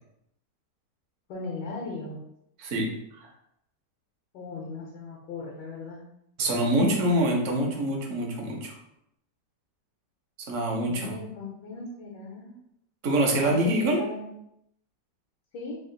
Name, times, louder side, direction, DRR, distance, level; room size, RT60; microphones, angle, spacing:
voice 1, 1.3-2.2 4.3-6.0 10.7-12.6 13.4-14.3 15.5-15.8, left 3 dB, 80° left, -2 dB, 1.4 m, -37 dB
voice 2, 6.4-8.8 10.5-11.1 13.0-14.0, right 1 dB, 55° right, 1 dB, 0.9 m, -25 dB
3.5 x 2.4 x 3.7 m, 0.78 s
omnidirectional pair, 1.9 m